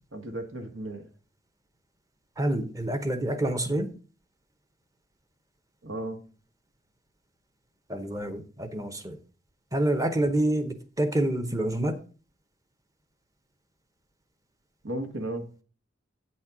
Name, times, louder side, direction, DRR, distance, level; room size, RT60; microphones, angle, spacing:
voice 1, 0.1-1.1 5.8-6.2 14.8-15.6, right 1 dB, 80° right, 1.5 m, -35 dB
voice 2, 2.4-3.9 7.9-9.2 9.7-12.0, right 1 dB, 15° right, 0.8 m, -27 dB
8.3 x 4.2 x 6.0 m
head